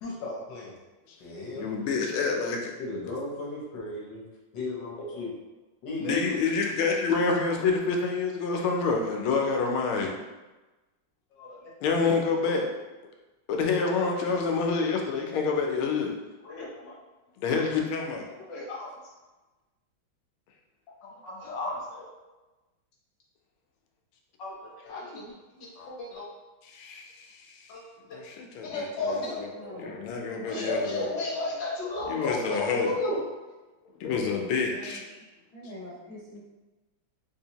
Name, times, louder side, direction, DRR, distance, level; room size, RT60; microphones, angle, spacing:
voice 1, 0.0-0.8 1.2-1.7 2.8-4.2 4.5-5.3 5.8-6.3 11.4-11.6 16.4-17.0 18.5-18.9 21.0-22.1 24.4-26.3 27.7-27.8 28.1-28.2 28.6-29.4 30.5-33.2, left 2 dB, 65° left, -4 dB, 1.5 m, -34 dB
voice 2, 1.5-2.7 6.0-10.2 11.8-12.7 13.5-16.1 17.4-18.3 26.6-27.7 28.1-28.9 29.4-29.5 29.8-31.1 32.1-32.9 34.0-35.0, left 4 dB, 85° left, 1 dB, 1.5 m, -27 dB
voice 3, 28.7-31.2 31.8-32.3 34.7-35.2 35.5-36.4, equal, 30° left, -14 dB, 0.7 m, -43 dB
3.9 x 2.7 x 2.8 m, 1.1 s
omnidirectional pair, 2.2 m